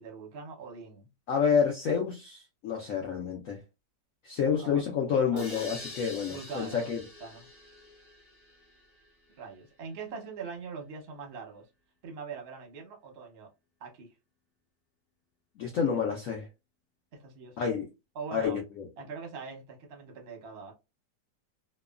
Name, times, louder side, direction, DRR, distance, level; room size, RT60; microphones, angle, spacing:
voice 1, 0.0-1.1 4.6-4.8 5.1-5.6 6.3-6.9 7.2-7.5 9.4-11.6 12.0-13.5 13.8-14.1 17.2-17.6 18.1-18.6 19.0-20.7, right 5 dB, 50° right, 0.8 m, -42 dB
voice 2, 1.3-3.6 4.2-7.0 15.6-16.5 17.6-17.9 18.3-18.9, left 6 dB, 75° left, 0.7 m, -29 dB
sound 1, 5.4-9.1, left 2 dB, 35° left, 1.0 m, -45 dB
3.0 x 2.1 x 2.3 m
omnidirectional pair, 2.0 m